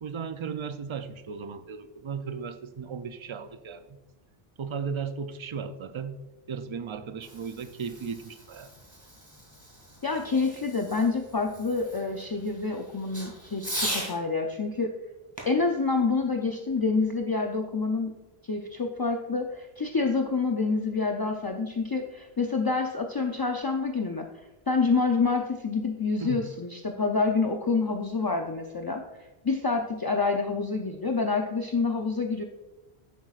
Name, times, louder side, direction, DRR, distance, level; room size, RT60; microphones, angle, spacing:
voice 1, 0.0-4.0 4.6-6.2 6.5-8.7 26.2-26.4, right 6 dB, 50° right, 10 dB, 0.3 m, -36 dB
Fireworks, 7.0-14.2 15.4-17.0, equal, 15° right, 2.0 m, -40 dB
voice 2, 10.0-14.9 15.5-18.1 18.5-24.3 24.7-29.0 29.4-32.4, left 4 dB, 35° left, 3 dB, 0.3 m, -27 dB
10.5 x 8.3 x 2.4 m, 1.1 s
omnidirectional pair, 1.1 m